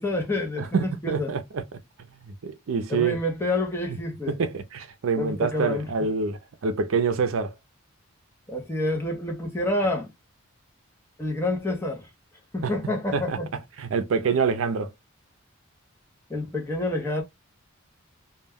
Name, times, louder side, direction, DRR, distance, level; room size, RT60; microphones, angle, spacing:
voice 1, 0.0-1.3 2.9-4.4 5.2-5.9 8.5-10.1 11.2-12.1 12.5-13.5 16.3-17.2, left 2 dB, 10° left, 0.6 m, -28 dB
voice 2, 0.6-1.6 2.2-3.2 4.3-7.5 12.6-12.7 13.1-13.4 13.8-14.9, right 5 dB, 75° right, 0.5 m, -26 dB
2.2 x 2.1 x 3.4 m
head